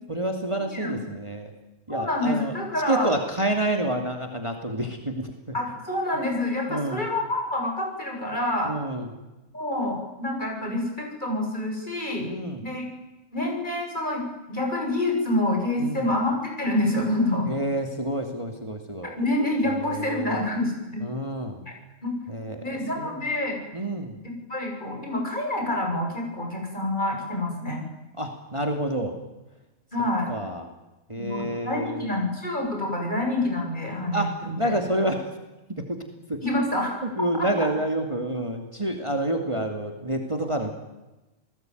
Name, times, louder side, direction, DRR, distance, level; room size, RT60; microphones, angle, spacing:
voice 1, 0.1-1.5 1.9-2.6 2.9-5.3 6.7-7.0 8.6-9.1 12.2-12.6 15.8-16.1 17.5-19.1 19.6-20.5 21.0-21.6 22.3-23.2 23.7-24.2 28.2-29.2 30.3-30.7 31.1-32.1 34.1-35.3 35.7-36.0 36.3-36.4 37.0-40.7, right 1 dB, 25° right, 4 dB, 2.8 m, -28 dB
voice 2, 1.9-3.1 5.5-8.7 9.5-12.3 12.6-12.8 13.3-14.2 14.5-17.5 19.2-21.0 22.0-22.1 22.6-23.6 24.2-27.8 29.9-30.3 31.1-34.7 36.4-37.0 37.4-37.5, left 1 dB, 35° left, 0 dB, 8.1 m, -27 dB
29.5 x 20.0 x 9.5 m, 1.0 s
omnidirectional pair, 1.3 m